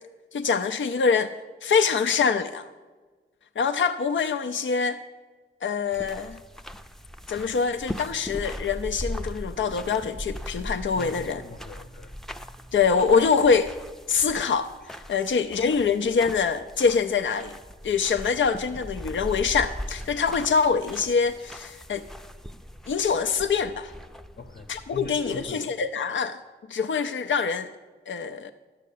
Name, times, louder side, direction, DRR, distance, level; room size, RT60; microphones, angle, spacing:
voice 1, 0.3-1.3 1.6-2.7 3.6-5.0 5.6-6.4 7.3-11.4 12.7-13.7 14.1-17.5 17.8-22.1 22.9-23.9 24.7-26.4 26.7-27.7 28.1-28.5, left 5 dB, 75° left, 8 dB, 0.5 m, -24 dB
sound 1, 5.9-25.5, equal, ahead, 0.5 m, -39 dB
voice 2, 10.9-12.1 24.4-25.8, left 3 dB, 60° left, 6 dB, 0.9 m, -40 dB
11.5 x 6.4 x 8.4 m, 1.4 s
wide cardioid pair, 85°, 20 cm